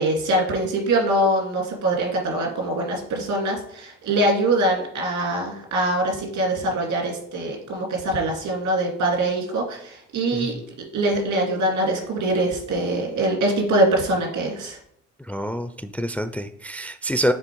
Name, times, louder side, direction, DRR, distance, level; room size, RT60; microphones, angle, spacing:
voice 1, 0.0-10.5 10.9-14.8, right 1 dB, 75° right, 0 dB, 2.1 m, -23 dB
voice 2, 15.2-17.3, equal, 5° left, 9 dB, 0.3 m, -27 dB
7.0 x 3.3 x 4.5 m, 0.69 s
cardioid pair, 90°, 30 cm